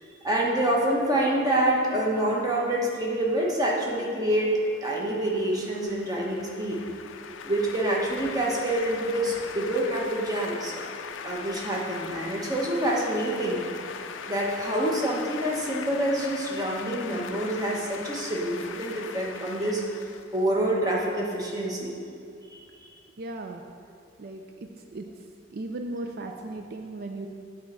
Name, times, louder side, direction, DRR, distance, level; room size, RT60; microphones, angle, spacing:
voice 1, 0.2-6.8 7.4-10.9 11.2-13.6 14.3-19.8 20.3-21.9 22.5-22.6, right 1 dB, 20° right, -3 dB, 1.1 m, -27 dB
sound 1, 4.3-21.0, left 6 dB, 85° left, 0.4 m, -40 dB
voice 2, 23.2-23.6 24.2-25.1 25.5-27.3, right 2 dB, 55° right, 4 dB, 0.4 m, -36 dB
8.4 x 4.3 x 6.1 m, 2.4 s
head